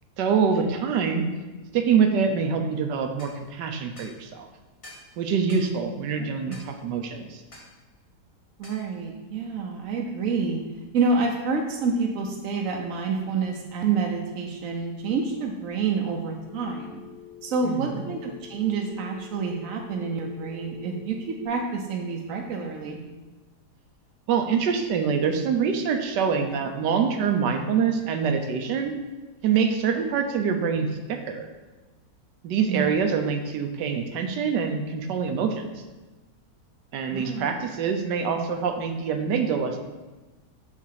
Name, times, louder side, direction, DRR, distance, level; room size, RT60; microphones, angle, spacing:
voice 1, 0.2-1.2 1.7-4.5 5.2-7.4 17.6-18.0 24.3-28.9 29.4-31.5 32.4-35.7 36.9-39.8, right 6 dB, 85° right, 5 dB, 1.4 m, -25 dB
sound 1, 3.2-3.4 4.0-4.2 4.8-5.1 5.5-5.7 6.5-6.7 7.5-7.7 8.6-8.8, left 1 dB, 25° left, 0.9 m, -46 dB
voice 2, 6.2-6.6 8.6-10.6 10.9-17.0 17.4-23.0 32.7-32.9 37.1-37.5, right 4 dB, 65° right, 1 dB, 0.9 m, -28 dB
Telephone, 16.5-21.5, left 10 dB, 65° left, 0.5 m, -46 dB
6.5 x 3.6 x 5.7 m, 1.2 s
omnidirectional pair, 1.8 m